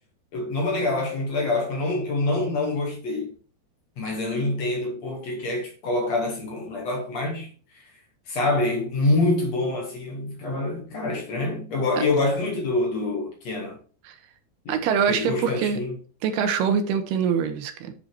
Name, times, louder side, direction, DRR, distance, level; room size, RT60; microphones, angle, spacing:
voice 1, 0.3-3.3 4.0-7.5 7.7-7.9 8.3-13.8 14.7-16.0, left 2 dB, 50° left, 2.4 m, -26 dB
voice 2, 14.7-15.8 16.2-17.9, right 7 dB, 80° right, 3.0 m, -24 dB
8.5 x 5.4 x 4.5 m
omnidirectional pair, 4.6 m